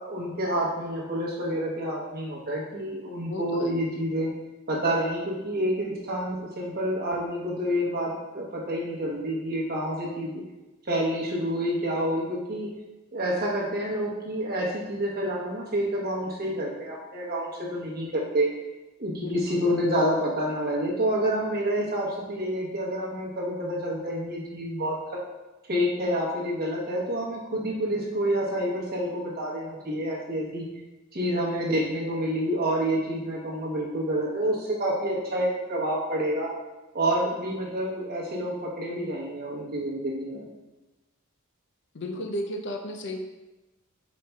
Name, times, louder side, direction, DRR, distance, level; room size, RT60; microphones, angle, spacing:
voice 1, 0.0-4.3 4.7-10.4 10.9-12.7 13.1-18.5 19.0-25.2 25.7-30.6 31.1-36.5 36.9-40.4, equal, 45° right, -3 dB, 1.0 m, -28 dB
voice 2, 3.2-3.7 19.1-19.6 41.9-43.2, left 1 dB, 55° left, 4 dB, 0.5 m, -34 dB
4.5 x 4.1 x 2.3 m, 1.1 s
head